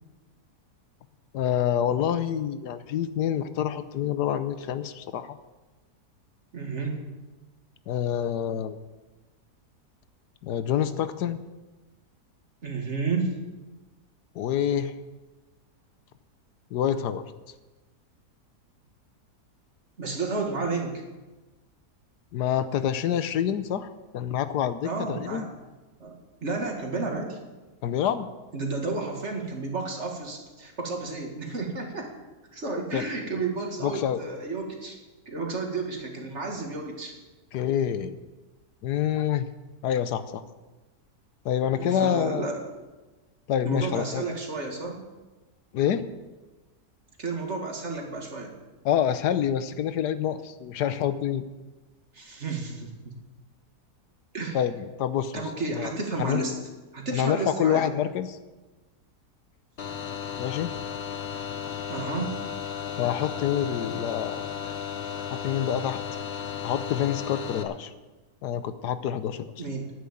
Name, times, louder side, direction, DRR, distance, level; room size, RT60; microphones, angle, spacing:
voice 1, 1.3-5.4 7.9-8.8 10.4-11.4 14.3-14.9 16.7-17.2 22.3-25.4 27.8-28.3 32.9-33.1 33.8-34.2 37.5-38.2 38.8-39.5 39.8-40.4 41.4-42.5 43.5-44.2 45.7-46.1 48.8-51.4 54.5-55.4 55.7-55.9 56.2-56.4 57.1-58.4 60.4-60.7 63.0-64.7 65.3-66.0 66.6-67.9 68.4-69.5, left 9 dB, 80° left, 12 dB, 1.3 m, -27 dB
voice 2, 6.5-7.0 12.6-13.4 20.0-21.0 24.8-25.5 26.0-26.1 26.4-27.4 28.5-32.1 32.5-35.0 35.3-37.1 41.7-42.6 43.6-45.0 47.2-48.6 52.1-53.2 54.3-54.6 55.3-56.5 56.9-57.9 61.9-62.3 69.6-69.9, right 3 dB, 45° right, 2 dB, 2.2 m, -31 dB
sound 1, 59.8-67.6, left 8 dB, 45° left, 1.0 m, -34 dB
10.5 x 9.5 x 8.5 m, 1.2 s
omnidirectional pair, 1.7 m